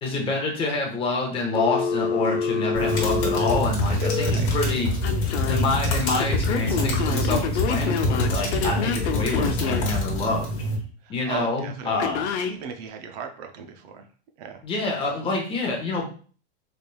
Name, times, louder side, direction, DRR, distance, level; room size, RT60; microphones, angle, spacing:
voice 1, 0.0-4.9 5.5-10.5 11.1-12.2 14.6-16.0, left 3 dB, 15° left, 0 dB, 0.7 m, -27 dB
Telephone, 1.5-4.3 5.0-5.6 6.2-9.9 12.0-12.5, left 6 dB, 75° left, 0.6 m, -27 dB
sound 1, 2.7-10.7, left 1 dB, 35° left, 1.1 m, -25 dB
voice 2, 3.9-4.5 8.6-8.9 11.0-12.2 12.5-14.1 14.4-14.6, right 7 dB, 40° right, 6 dB, 0.4 m, -38 dB
4.1 x 3.3 x 2.2 m, 0.41 s
supercardioid pair, 155°, 34 cm